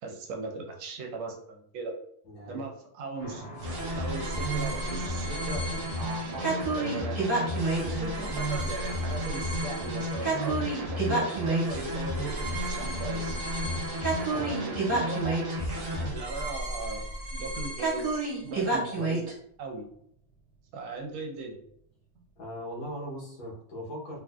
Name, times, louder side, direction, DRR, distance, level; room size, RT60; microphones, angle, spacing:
voice 1, 0.0-1.9 2.5-3.4 4.0-5.6 5.9-7.2 7.9-10.6 10.9-12.3 12.7-13.4 14.3-15.4 16.1-17.0 17.3-19.3 19.6-19.9 20.7-21.6 22.1-22.2, right 3 dB, 80° right, 1 dB, 1.4 m, -38 dB
voice 2, 2.2-2.7 14.3-14.5 22.4-24.2, equal, 70° left, -4 dB, 1.6 m, -39 dB
sound 1, 3.2-22.9, right 1 dB, 20° left, 1.0 m, -53 dB
sound 2, 3.6-19.3, right 2 dB, 25° right, 1.2 m, -32 dB
sound 3, 3.6-16.1, equal, 60° right, 0.8 m, -33 dB
3.7 x 2.5 x 2.2 m, 0.68 s
omnidirectional pair, 2.2 m